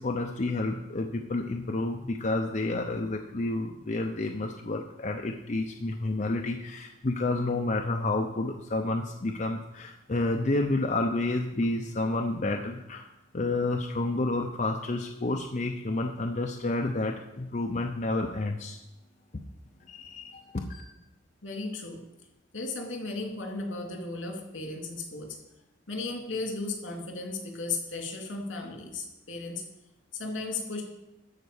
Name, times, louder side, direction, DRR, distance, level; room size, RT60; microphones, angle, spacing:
voice 1, 0.0-13.1 13.3-18.8 19.3-19.4 19.9-20.8, left 2 dB, 40° left, 2 dB, 0.6 m, -30 dB
voice 2, 21.4-22.0 22.5-25.4 25.9-29.6 30.1-30.8, left 3 dB, 75° left, 0 dB, 3.0 m, -35 dB
13.0 x 4.6 x 7.1 m, 0.92 s
head